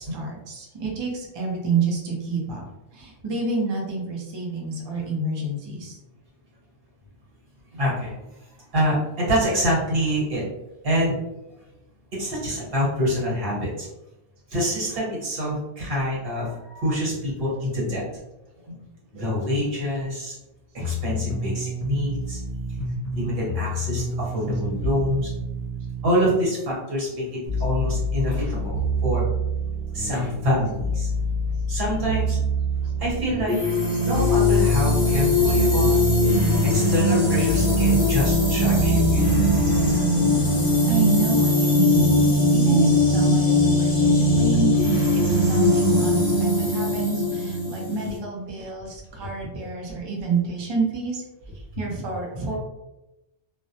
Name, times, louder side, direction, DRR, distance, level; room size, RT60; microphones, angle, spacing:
voice 1, 0.0-2.6 2.9-6.0 40.9-44.7 45.1-51.2 51.8-52.6, right 3 dB, 45° right, -2 dB, 0.3 m, -28 dB
voice 2, 7.7-8.2 8.7-10.4 10.8-11.1 12.1-13.9 14.5-18.0 18.6-18.8 19.1-20.3 20.7-22.4 23.1-25.3 26.0-29.2 29.9-31.1 31.7-32.4 33.0-33.6 34.0-36.1 36.7-39.4 49.6-49.7, equal, 60° right, -5 dB, 1.2 m, -26 dB
sound 1, 20.8-26.1, equal, 50° left, 0.5 m, -30 dB
sound 2, 27.5-40.8, right 1 dB, 85° right, 1.0 m, -27 dB
sound 3, 33.5-48.2, left 1 dB, 10° left, 0.7 m, -20 dB
2.2 x 2.0 x 2.7 m, 0.96 s
omnidirectional pair, 1.1 m